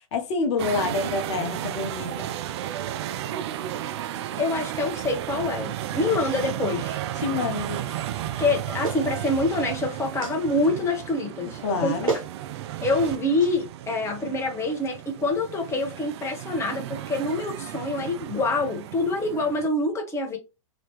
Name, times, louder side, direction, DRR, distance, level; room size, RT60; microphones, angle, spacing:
voice 1, 0.1-2.3 7.1-7.9 11.4-12.1, left 4 dB, 55° left, 0.8 m, -28 dB
sound 1, 0.6-19.7, right 12 dB, 50° right, 0.4 m, -33 dB
voice 2, 4.4-7.0 8.4-11.9 12.8-20.4, left 2 dB, 15° left, 1.0 m, -26 dB
Clapping, 8.8-9.1 10.2-10.4 11.6-11.7 12.1-12.3 13.4-13.5, right 4 dB, 75° right, 1.2 m, -28 dB
3.0 x 2.8 x 3.0 m
figure-of-eight pair, 105°, 17 cm